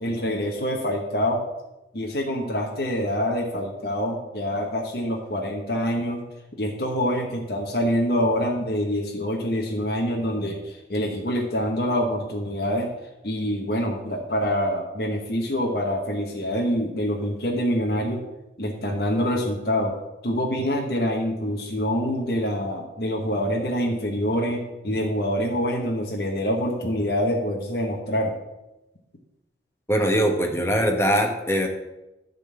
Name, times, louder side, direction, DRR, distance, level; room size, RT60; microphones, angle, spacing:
voice 1, 0.0-1.4 1.9-6.2 6.6-12.9 13.2-18.2 18.6-20.0 20.2-28.3, equal, 55° left, 0 dB, 1.2 m, -25 dB
voice 2, 29.9-31.7, equal, 15° left, 3 dB, 1.0 m, -21 dB
10.5 x 3.9 x 7.6 m, 0.98 s
head